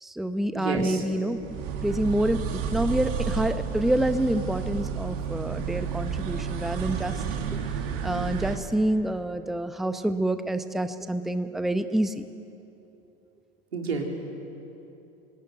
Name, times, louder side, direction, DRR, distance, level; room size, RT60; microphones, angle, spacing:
voice 1, 0.0-1.4 1.8-7.2 8.0-12.2, right 1 dB, ahead, 10 dB, 0.9 m, -27 dB
voice 2, 0.5-1.0 13.7-14.0, right 4 dB, 85° right, 1 dB, 3.8 m, -29 dB
sound 1, 1.4-8.6, right 7 dB, 45° right, 2.6 m, -31 dB
24.0 x 19.0 x 9.4 m, 3.0 s
figure-of-eight pair, 85°, 31 cm